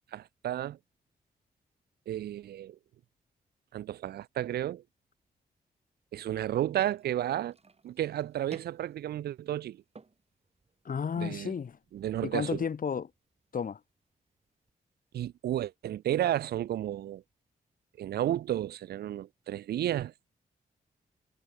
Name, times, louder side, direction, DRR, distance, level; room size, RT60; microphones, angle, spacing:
voice 1, 0.1-0.8 2.1-2.8 3.7-4.8 6.1-7.6 7.8-9.8 11.2-11.5 11.9-12.6 15.1-17.2 18.0-20.1, right 12 dB, 85° right, 0.5 m, -32 dB
sound 1, 6.7-14.7, right 4 dB, 40° right, 7.2 m, -58 dB
voice 2, 10.9-11.8 12.2-13.1 13.5-13.8, left 6 dB, 60° left, 2.1 m, -32 dB
cardioid pair, 65°, 16 cm